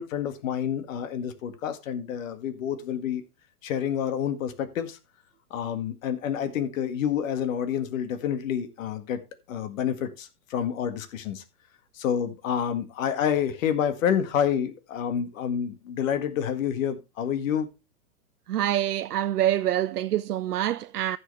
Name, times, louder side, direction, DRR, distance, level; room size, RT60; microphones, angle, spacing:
voice 1, 0.0-3.2 3.6-5.0 5.5-9.2 9.5-11.4 11.9-17.7, left 8 dB, 60° left, 2.0 m, -28 dB
voice 2, 18.5-21.2, right 12 dB, 85° right, 0.6 m, -26 dB
15.0 x 6.4 x 3.3 m
hypercardioid pair, 120°, 45 cm